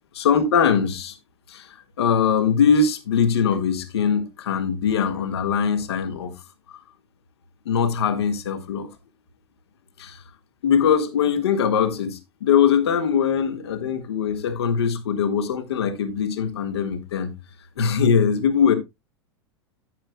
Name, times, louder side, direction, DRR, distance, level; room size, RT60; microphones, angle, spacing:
voice 1, 0.1-1.1 1.5-1.7 2.0-6.3 7.6-8.9 10.0-10.2 10.6-17.3 17.8-18.7, left 6 dB, 65° left, 1.6 m, -21 dB
11.0 x 9.0 x 2.2 m
figure-of-eight pair, 90°, 15 cm